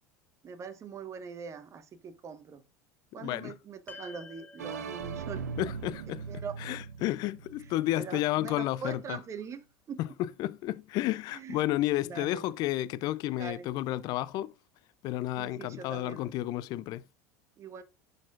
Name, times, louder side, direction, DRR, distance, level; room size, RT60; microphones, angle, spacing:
voice 1, 0.4-2.6 3.1-5.4 6.3-6.6 7.9-10.0 11.3-11.6 12.0-12.4 13.4-13.7 15.4-16.2 17.6-17.8, right 6 dB, 35° right, 1.1 m, -42 dB
voice 2, 3.2-3.5 5.6-9.2 10.0-14.5 15.0-17.0, left 15 dB, 50° left, 0.4 m, -32 dB
sound 1, 3.9-8.3, left 4 dB, 20° left, 1.2 m, -54 dB
sound 2, 4.6-8.4, right 6 dB, 85° right, 0.7 m, -40 dB
11.5 x 4.3 x 2.4 m
hypercardioid pair, 80°, 8 cm